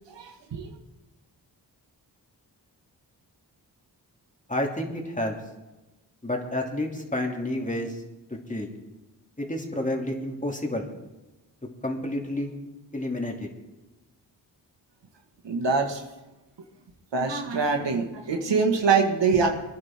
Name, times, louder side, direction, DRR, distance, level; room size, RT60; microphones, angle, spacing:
voice 1, 0.1-0.7 15.4-16.0 17.1-19.5, right 5 dB, 85° right, 3 dB, 1.9 m, -24 dB
voice 2, 4.5-5.4 6.2-8.0 8.5-8.7 9.4-10.9 11.8-12.5 12.9-13.5, left 1 dB, 20° left, 1 dB, 2.8 m, -29 dB
24.0 x 11.0 x 3.7 m, 1.0 s
cardioid pair, 70°, 43 cm